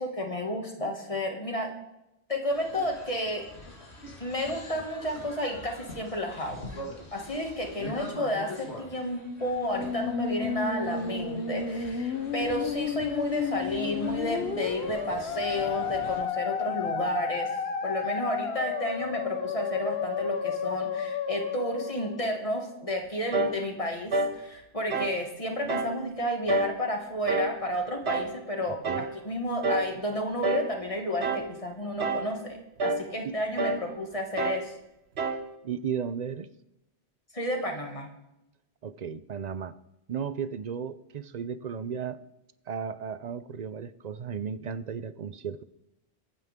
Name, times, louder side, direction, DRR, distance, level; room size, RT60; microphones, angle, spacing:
voice 1, 0.0-1.7 2.3-3.4 4.2-6.7 7.1-17.5 17.8-34.7 37.3-38.1, left 1 dB, 30° left, 2 dB, 2.1 m, -31 dB
sound 1, 2.5-16.2, left 1 dB, 90° left, 2.3 m, -44 dB
Musical instrument, 9.5-22.8, left 6 dB, 75° left, 1.0 m, -32 dB
sound 2, 23.3-23.6 24.1-24.4 24.9-25.2 25.7-26.0 26.5-26.8 27.3-27.6 28.1-28.3 28.8-29.1 29.6-29.9 30.4-30.7 31.2-31.5 32.0-32.3 32.8-33.1 33.6-33.9 34.4-34.7 35.2-35.5, right 3 dB, 75° right, 1.2 m, -28 dB
voice 2, 35.6-36.5 38.8-39.7 40.1-42.2 42.7-45.6, right 7 dB, 50° right, 15 dB, 0.6 m, -34 dB
23.0 x 9.4 x 3.6 m, 0.90 s
omnidirectional pair, 1.1 m